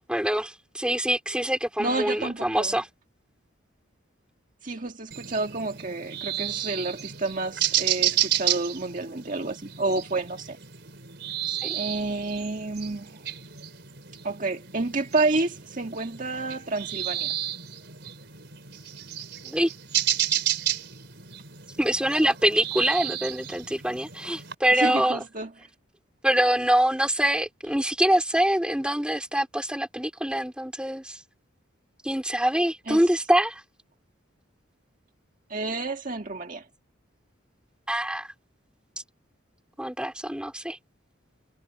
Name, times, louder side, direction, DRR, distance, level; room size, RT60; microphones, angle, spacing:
voice 1, 0.0-2.9 11.5-11.8 19.4-19.7 21.8-25.2 26.2-31.2 32.0-33.6 37.9-38.3 39.8-40.8, right 1 dB, 5° right, 3.1 m, -25 dB
voice 2, 1.8-2.8 4.6-10.6 11.7-13.3 14.2-17.3 24.7-25.5 32.9-33.0 35.5-36.6, right 3 dB, 40° right, 1.6 m, -29 dB
sound 1, 5.1-24.5, right 11 dB, 55° right, 4.9 m, -32 dB
head